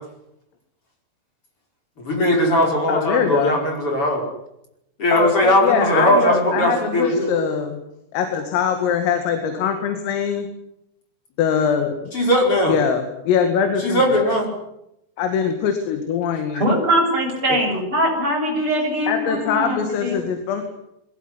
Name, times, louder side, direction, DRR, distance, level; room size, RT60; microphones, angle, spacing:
voice 1, 2.0-4.2 5.0-7.3 12.1-12.8 13.8-14.5, equal, 25° left, 2 dB, 5.8 m, -19 dB
voice 2, 2.9-3.6 5.1-7.8 8.1-10.5 11.4-12.0 12.7-14.3 15.2-16.6 17.5-17.6 19.1-20.7, left 7 dB, 85° left, 6 dB, 4.8 m, -22 dB
voice 3, 16.6-20.2, right 1 dB, 25° right, 0 dB, 8.2 m, -21 dB
22.0 x 18.5 x 9.8 m, 0.83 s
omnidirectional pair, 5.9 m